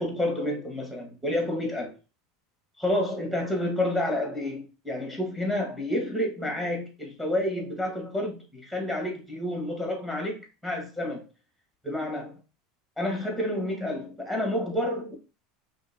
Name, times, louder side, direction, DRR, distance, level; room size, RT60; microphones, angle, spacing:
voice 1, 0.0-1.9 2.8-10.4 10.6-11.2 11.8-12.4 13.0-15.2, left 1 dB, ahead, 1.6 m, -29 dB
5.2 x 2.8 x 2.8 m
supercardioid pair, 125°, 0 cm